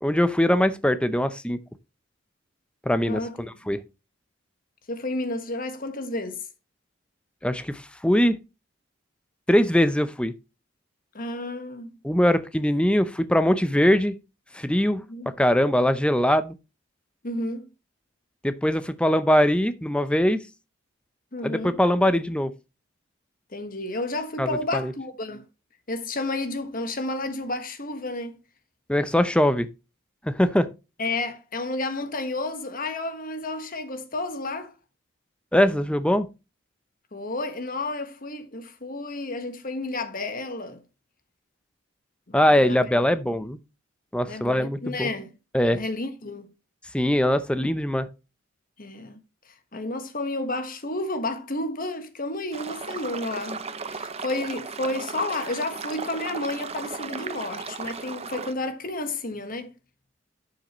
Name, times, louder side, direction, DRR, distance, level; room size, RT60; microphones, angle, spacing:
voice 1, 0.0-1.6 2.9-3.8 7.4-8.4 9.5-10.3 12.0-14.2 14.5-15.0 15.4-16.5 18.4-20.4 21.4-22.5 24.4-24.9 28.9-29.7 30.3-30.7 35.5-36.3 42.3-43.6 44.1-45.1 45.5-45.8 46.9-48.1, equal, 5° left, 0.6 m, -22 dB
voice 2, 3.0-3.6 4.9-6.5 11.1-12.0 15.1-15.3 17.2-17.7 21.3-21.8 23.5-25.4 25.9-28.4 31.0-34.7 37.1-40.8 42.3-43.5 44.3-45.3 45.7-46.5 48.8-49.2 49.5-59.7, left 2 dB, 45° left, 1.4 m, -31 dB
sound 1, 52.5-58.5, right 5 dB, 30° right, 0.7 m, -35 dB
12.0 x 6.6 x 3.1 m
head